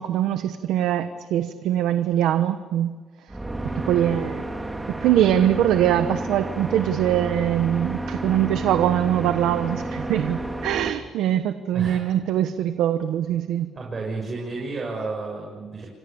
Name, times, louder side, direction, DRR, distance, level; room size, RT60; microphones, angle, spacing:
voice 1, 0.0-2.9 3.7-4.4 5.0-13.7, right 11 dB, 90° right, 10 dB, 1.0 m, -22 dB
sound 1, 3.3-10.9, right 1 dB, 15° right, 2.6 m, -31 dB
voice 2, 13.7-15.9, right 3 dB, 35° right, -1 dB, 6.7 m, -31 dB
29.0 x 24.5 x 7.1 m, 1.4 s
cardioid pair, 90°, 0 cm